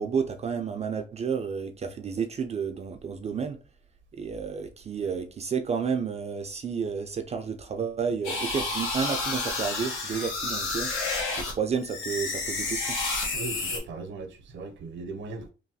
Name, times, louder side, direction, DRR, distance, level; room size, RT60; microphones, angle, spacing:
voice 1, 0.0-3.6 4.1-10.9 11.4-13.0, right 6 dB, 35° right, 0.3 m, -31 dB
sound 1, 8.2-11.5 11.8-13.8, left 3 dB, 85° left, 1.0 m, -30 dB
voice 2, 13.3-15.5, right 3 dB, 70° right, 0.7 m, -38 dB
3.1 x 2.2 x 2.7 m
cardioid pair, 90°, 20 cm